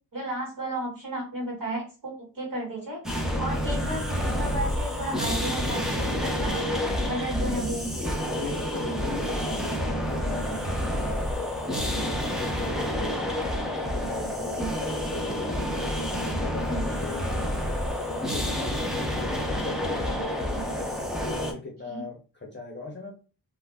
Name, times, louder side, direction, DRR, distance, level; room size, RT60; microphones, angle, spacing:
voice 1, 0.1-6.6 7.1-7.9 8.8-9.1 14.4-14.7 16.7-17.0 21.8-22.1, right 1 dB, 50° right, -2 dB, 1.5 m, -34 dB
sound 1, 3.0-21.5, equal, ahead, 0.4 m, -29 dB
voice 2, 3.7-4.1 7.5-13.3 13.9-15.6 15.9-17.3 18.0-23.1, left 3 dB, 25° left, -1 dB, 0.7 m, -39 dB
2.5 x 2.1 x 3.4 m, 0.35 s
wide cardioid pair, 175°, 42 cm